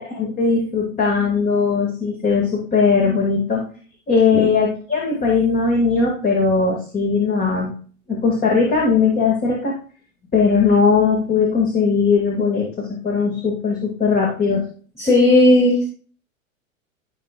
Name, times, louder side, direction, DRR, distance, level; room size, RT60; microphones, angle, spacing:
voice 1, 0.1-3.6 4.1-7.7 8.1-9.7 10.3-14.6, left 5 dB, 20° left, -1 dB, 2.5 m, -19 dB
voice 2, 15.0-15.8, left 1 dB, 5° left, -3 dB, 3.1 m, -14 dB
16.5 x 5.8 x 2.6 m, 0.42 s
figure-of-eight pair, 95°, 41 cm